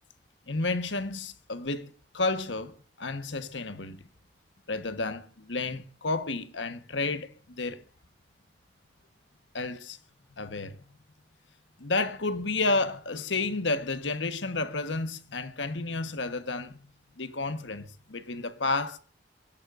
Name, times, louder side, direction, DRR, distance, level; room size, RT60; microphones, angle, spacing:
voice 1, 0.5-2.7 3.0-4.1 4.7-7.8 9.5-10.0 10.3-10.8 11.8-16.8 17.2-19.0, left 3 dB, 85° left, 1.3 m, -31 dB
23.0 x 16.5 x 2.6 m
head